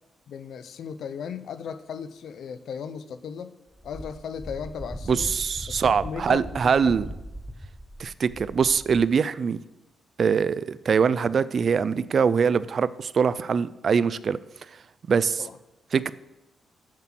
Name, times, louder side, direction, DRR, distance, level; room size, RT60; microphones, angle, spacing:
voice 1, 0.3-3.6 3.8-5.3 5.7-5.8 6.0-6.9 15.4-15.6, left 7 dB, 70° left, 12 dB, 0.5 m, -36 dB
Wind, 3.8-9.1, equal, ahead, 0.9 m, -39 dB
voice 2, 5.1-7.1 8.0-9.6 10.2-14.4 15.1-15.4 15.9-16.1, right 6 dB, 45° right, 17 dB, 0.3 m, -23 dB
7.5 x 7.4 x 5.9 m, 0.99 s
cardioid pair, 110°, 0 cm